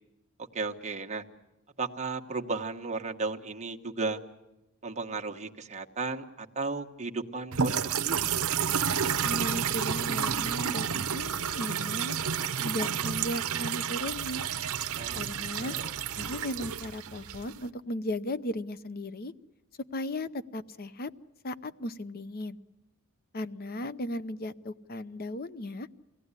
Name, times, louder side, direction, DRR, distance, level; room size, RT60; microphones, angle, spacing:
voice 1, 0.5-1.2 1.8-4.2 4.8-8.3 15.0-15.2 15.6-15.9, right 3 dB, 30° right, 3 dB, 1.4 m, -34 dB
sound 1, 7.5-17.7, right 7 dB, 75° right, 0.8 m, -30 dB
voice 2, 9.2-12.2 12.6-14.4 15.1-15.8 16.2-19.3 19.9-21.1 21.4-22.6 23.3-25.9, left 1 dB, 45° left, 14 dB, 0.7 m, -36 dB
23.5 x 17.0 x 9.8 m, 0.98 s
head